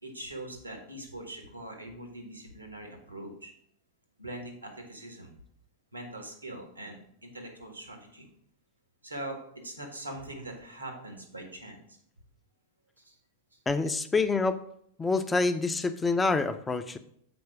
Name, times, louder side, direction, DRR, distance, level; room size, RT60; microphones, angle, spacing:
voice 1, 0.0-3.5 4.2-5.3 5.9-8.3 9.0-11.8 13.0-13.1, right 1 dB, 85° right, 3 dB, 1.7 m, -42 dB
voice 2, 13.7-14.6 15.0-17.0, left 3 dB, 15° left, 9 dB, 0.6 m, -27 dB
7.0 x 4.7 x 4.6 m, 0.66 s
figure-of-eight pair, 90°, 0 cm